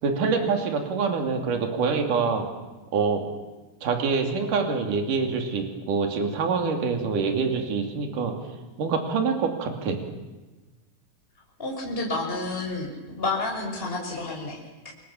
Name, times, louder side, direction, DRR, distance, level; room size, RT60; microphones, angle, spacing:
voice 1, 0.0-2.4 2.9-3.3 3.8-8.3 8.8-10.0, right 5 dB, 65° right, 4 dB, 4.4 m, -25 dB
voice 2, 11.6-14.9, left 2 dB, 15° left, -1 dB, 5.8 m, -30 dB
29.0 x 25.0 x 7.3 m, 1.2 s
omnidirectional pair, 4.1 m